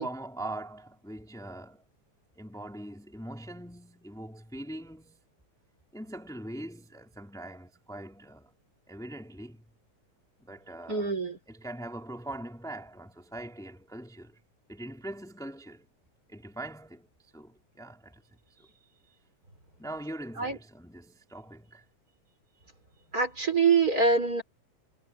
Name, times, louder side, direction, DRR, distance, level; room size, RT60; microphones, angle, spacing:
voice 1, 0.0-1.8 2.4-5.2 5.9-8.5 8.9-9.6 10.4-11.1 11.5-14.4 14.7-15.9 16.3-17.1 17.3-18.2 19.8-21.8, right 1 dB, ahead, 3.2 m, -42 dB
voice 2, 10.9-11.4 20.4-20.6 23.1-24.4, right 4 dB, 30° right, 4.6 m, -25 dB
omnidirectional pair, 3.4 m